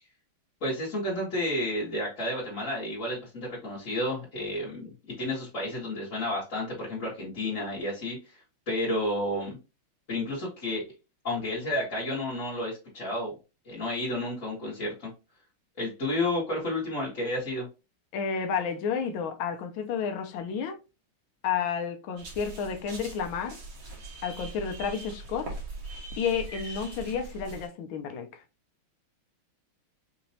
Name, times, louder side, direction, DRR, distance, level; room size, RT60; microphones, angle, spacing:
voice 1, 0.6-8.2 8.7-9.6 10.1-10.9 11.2-13.3 13.7-15.1 15.8-17.7, left 1 dB, 40° left, 1.8 m, -31 dB
voice 2, 18.1-20.8 21.4-23.6 24.2-25.5 26.2-28.4, left 6 dB, 75° left, 1.5 m, -31 dB
sound 1, 22.2-27.7, right 2 dB, 60° right, 2.0 m, -41 dB
5.3 x 2.9 x 2.7 m
omnidirectional pair, 2.3 m